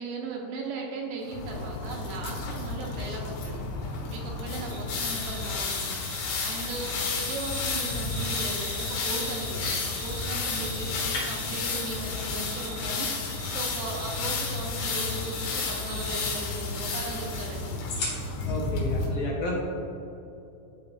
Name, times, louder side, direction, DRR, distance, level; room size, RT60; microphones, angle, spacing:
voice 1, 0.0-6.9 7.2-17.7, right 3 dB, 80° right, -1 dB, 2.6 m, -37 dB
sound 1, 1.3-19.1, left 4 dB, 90° left, 3.5 m, -32 dB
sound 2, 4.7-9.5 9.9-12.9 13.3-16.3, right 3 dB, 60° right, 2.2 m, -42 dB
sound 3, 5.8-18.5, left 2 dB, 55° left, 1.9 m, -42 dB
voice 2, 18.4-19.6, left 1 dB, 75° left, -3 dB, 2.2 m, -32 dB
11.0 x 5.3 x 2.4 m, 2.8 s
omnidirectional pair, 5.3 m